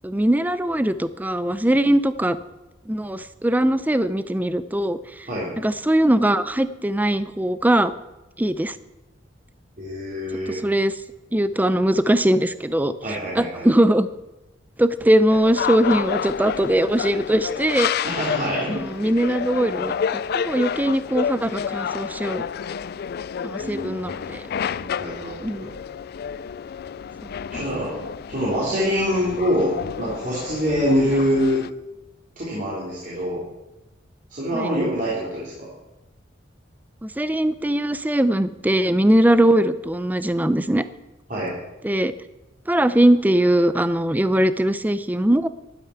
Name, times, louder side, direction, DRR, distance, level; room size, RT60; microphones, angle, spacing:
voice 1, 0.0-2.4 2.9-5.3 5.6-7.9 8.4-8.7 10.5-10.9 11.3-12.9 13.3-14.1 14.8-17.9 18.7-22.5 23.4-24.4 25.4-25.7 27.5-27.6 34.5-34.7 37.0-40.8 41.8-42.1 42.7-45.5, right 1 dB, 10° right, 13 dB, 0.5 m, -21 dB
voice 2, 9.8-10.6 13.0-13.7 18.0-18.8 23.6-24.1 24.8-25.3 25.6-25.7 27.5-27.9 28.3-31.6 32.4-33.4 34.3-35.7 41.3-41.5, equal, 45° right, -8 dB, 3.8 m, -25 dB
sound 1, 15.3-31.7, left 7 dB, 55° left, 0.3 m, -30 dB
12.0 x 11.5 x 5.9 m, 1.0 s
head